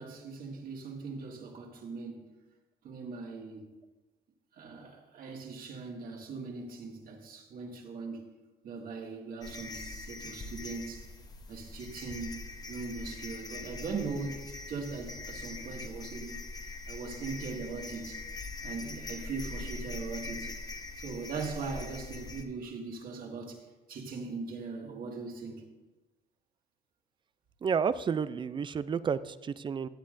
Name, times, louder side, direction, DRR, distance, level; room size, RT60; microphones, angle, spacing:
voice 1, 0.0-2.3 2.8-3.6 4.6-8.3 8.6-11.1 11.5-16.4 16.9-18.2 18.6-20.5 21.0-23.6 23.9-25.6, right 4 dB, 60° right, 1 dB, 2.0 m, -40 dB
sound 1, 9.4-22.4, left 3 dB, 20° left, 0.9 m, -42 dB
voice 2, 27.6-29.9, right 6 dB, 30° right, 15 dB, 0.4 m, -31 dB
16.0 x 9.4 x 2.6 m, 1.1 s
cardioid pair, 110°, 17 cm